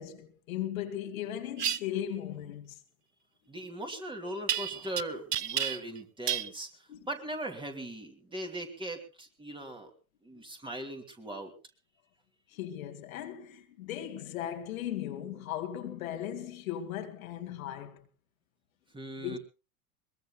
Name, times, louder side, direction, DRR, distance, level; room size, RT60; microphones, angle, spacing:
voice 1, 0.0-2.8 6.9-7.0 10.3-10.4 12.5-18.1 19.2-19.4, left 11 dB, 60° left, 2.3 m, -37 dB
sound 1, 1.6-1.8 4.5-5.0 5.3-6.0 6.3-6.5, right 9 dB, 85° right, 0.7 m, -30 dB
voice 2, 3.5-9.9 10.2-11.5 18.9-19.4, right 1 dB, 10° right, 2.7 m, -39 dB
22.5 x 21.5 x 2.3 m
figure-of-eight pair, 95°, 45 cm